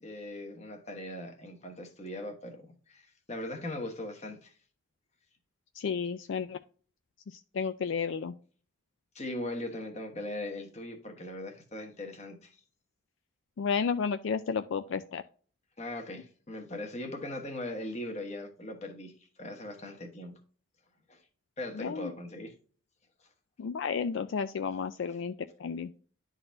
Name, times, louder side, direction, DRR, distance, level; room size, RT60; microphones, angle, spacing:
voice 1, 0.0-4.5 9.1-12.5 15.8-19.1 19.4-20.4 21.1-21.2 21.6-22.5 25.1-25.2, left 1 dB, 30° left, 1.2 m, -40 dB
voice 2, 5.8-6.6 7.3-8.3 13.6-15.2 21.8-22.1 23.6-25.3 25.6-25.9, left 6 dB, 65° left, 0.4 m, -32 dB
11.5 x 4.0 x 2.6 m
head